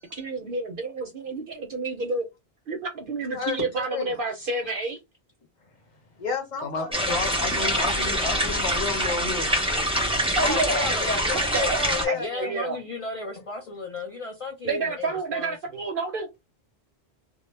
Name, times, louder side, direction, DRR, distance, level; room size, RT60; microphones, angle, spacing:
voice 1, 0.1-2.2 2.7-5.0 9.7-9.8 10.4-10.9 11.5-11.8 12.1-12.8 14.6-16.3, right 3 dB, 60° right, 0.6 m, -29 dB
voice 2, 3.2-4.1 6.2-8.7 9.7-12.5, left 5 dB, 45° left, 0.8 m, -33 dB
voice 3, 6.6-9.5 11.7-11.8, left 4 dB, 85° left, 1.0 m, -31 dB
sound 1, 6.9-12.1, equal, 5° right, 0.4 m, -25 dB
voice 4, 10.3-11.1 12.1-15.5, left 3 dB, 65° left, 0.3 m, -35 dB
2.1 x 2.0 x 3.1 m
omnidirectional pair, 1.1 m